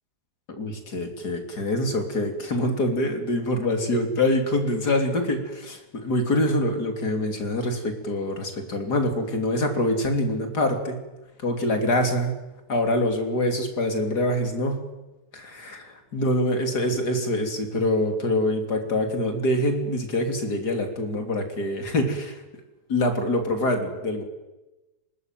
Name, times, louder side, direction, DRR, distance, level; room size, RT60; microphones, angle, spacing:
voice 1, 0.6-11.0 11.4-12.4 12.7-14.8 15.3-22.4 22.9-24.2, left 1 dB, 70° left, 5 dB, 3.8 m, -25 dB
23.0 x 21.0 x 9.2 m, 1.1 s
omnidirectional pair, 1.8 m